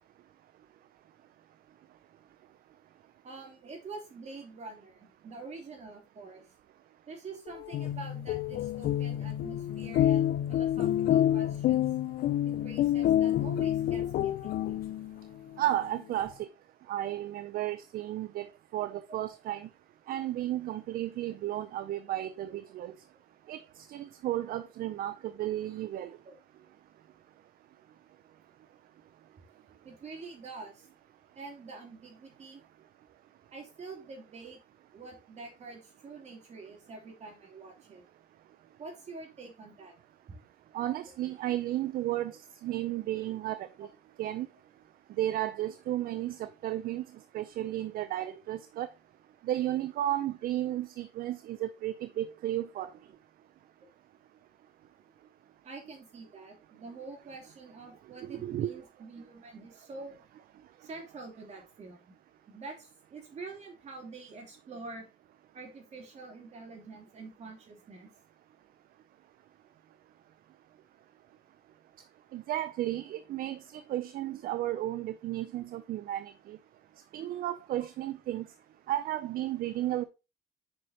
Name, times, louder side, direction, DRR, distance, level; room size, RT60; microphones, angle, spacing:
voice 1, 3.2-6.5 7.1-11.9 12.4-14.9 19.1-19.2 22.5-22.6 24.6-24.7 26.2-26.4 29.8-30.9 31.3-32.6 33.5-34.6 34.9-38.0 38.8-39.9 55.6-60.2 60.8-62.0 62.5-65.0 65.5-68.1 73.7-73.8, right 3 dB, 40° right, 3.1 m, -46 dB
sound 1, 7.6-15.2, left 12 dB, 60° left, 0.4 m, -28 dB
voice 2, 15.6-16.5 16.9-19.7 20.1-22.9 23.5-23.6 23.9-26.1 40.7-42.3 42.6-43.9 44.2-44.5 45.2-47.0 47.3-48.9 49.4-52.9 58.2-58.7 72.3-73.6 73.9-76.6 77.1-78.4 78.9-80.0, right 13 dB, 60° right, 0.5 m, -33 dB
7.8 x 5.6 x 2.8 m
cardioid pair, 110°, 17 cm